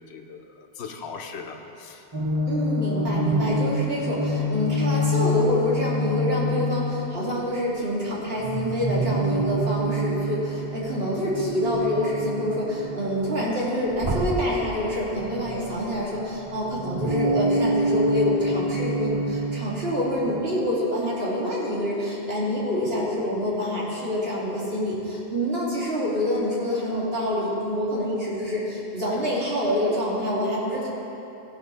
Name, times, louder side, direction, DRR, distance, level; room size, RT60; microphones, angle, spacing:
voice 1, 0.0-2.0, left 5 dB, 75° left, 4 dB, 1.1 m, -39 dB
sound 1, 2.1-7.3 8.4-13.5 13.9-16.0 16.4-20.4, equal, 30° right, 0.6 m, -27 dB
voice 2, 2.5-30.9, left 1 dB, 65° right, -6 dB, 2.5 m, -26 dB
16.0 x 5.7 x 5.3 m, 2.9 s
omnidirectional pair, 1.1 m